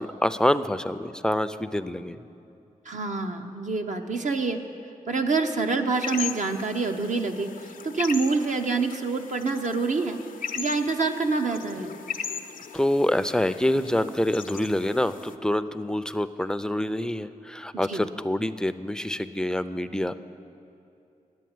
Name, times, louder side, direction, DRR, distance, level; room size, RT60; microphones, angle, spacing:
voice 1, 0.0-2.2 12.7-20.2, left 1 dB, 5° left, 12 dB, 0.5 m, -26 dB
voice 2, 2.8-4.6 5.1-10.2 10.5-11.9 17.9-18.0, right 4 dB, 60° right, 4 dB, 0.9 m, -26 dB
sound 1, 5.9-15.3, left 8 dB, 75° left, 0.6 m, -38 dB
10.5 x 8.1 x 9.4 m, 2.6 s
cardioid pair, 60°, 14 cm